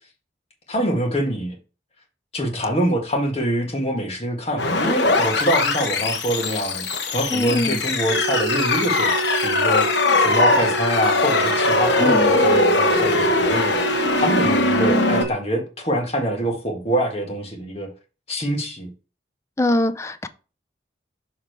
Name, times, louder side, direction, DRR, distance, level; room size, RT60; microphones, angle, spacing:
voice 1, 0.7-1.5 2.3-9.9 10.2-17.9 18.3-18.9, equal, 35° left, 1.6 m, -25 dB
sound 1, 4.6-15.2, left 2 dB, 90° left, 1.0 m, -20 dB
voice 2, 7.3-7.8 12.0-12.3 19.6-20.3, left 1 dB, 15° left, 0.4 m, -22 dB
sound 2, 8.1-15.3, right 3 dB, 60° right, 1.1 m, -28 dB
6.6 x 3.6 x 4.5 m
head